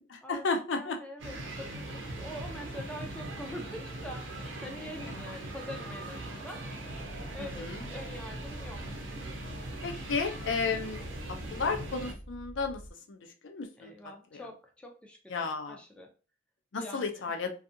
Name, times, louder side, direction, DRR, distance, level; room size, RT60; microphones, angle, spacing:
voice 1, 0.1-1.0 5.0-5.4 7.4-7.8 9.8-11.0 11.3-12.8 13.1-13.9 14.3-14.4 15.3-15.8 16.7-17.5, left 4 dB, 70° left, 5 dB, 0.5 m, -33 dB
voice 2, 0.8-1.9 2.2-6.6 7.3-8.8 13.8-16.1 16.8-17.2, left 1 dB, 5° left, 2 dB, 0.4 m, -44 dB
sound 1, 1.2-12.1, right 1 dB, 75° right, 0.7 m, -41 dB
sound 2, 6.9-12.9, equal, 25° right, 0.7 m, -46 dB
2.6 x 2.4 x 2.5 m, 0.35 s
head